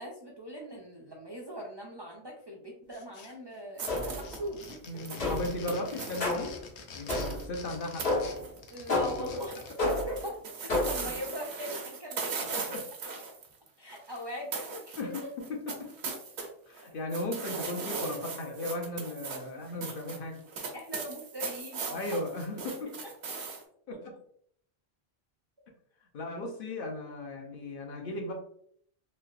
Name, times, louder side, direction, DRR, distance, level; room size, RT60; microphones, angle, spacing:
voice 1, 0.0-4.8 8.7-10.3 10.6-12.6 13.8-14.9 20.7-22.2 23.0-23.1, equal, 45° right, -1 dB, 0.3 m, -40 dB
sound 1, 2.9-3.6 3.8-9.8, left 5 dB, 90° left, 0.9 m, -47 dB
sound 2, 3.8-6.3 7.1-7.4 8.0-8.1 8.4-9.0 9.2-14.2 14.5-16.5 16.7-23.6, right 5 dB, 75° right, 0.9 m, -39 dB
sound 3, 3.9-4.4 5.2-5.6 6.2-6.6 7.1-7.5 8.0-8.5 8.9-9.4 9.8-10.2 10.7-11.1, left 2 dB, 75° left, 1.5 m, -30 dB
voice 2, 4.9-6.5 6.9-8.1 9.2-9.9 11.0-11.1 12.5-12.8 15.0-15.1 15.4-16.1 16.7-20.4 21.9-22.9 23.9-24.1 26.1-28.3, left 2 dB, 60° left, 1 dB, 0.8 m, -36 dB
3.3 x 2.7 x 2.3 m, 0.64 s
omnidirectional pair, 1.1 m